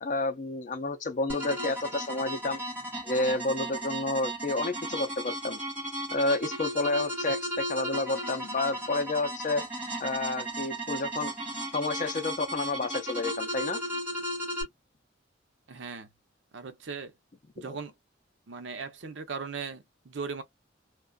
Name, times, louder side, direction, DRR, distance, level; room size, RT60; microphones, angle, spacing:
voice 1, 0.0-2.6 3.0-5.6 6.1-9.6 10.0-11.3 11.7-13.8 17.6-17.7, left 2 dB, 40° left, 0.5 m, -30 dB
sound 1, 1.3-14.6, right 1 dB, 10° right, 1.3 m, -35 dB
voice 2, 15.7-16.1 16.5-17.1 17.6-17.9 18.5-20.4, right 5 dB, 70° right, 0.6 m, -38 dB
2.5 x 2.2 x 2.2 m
head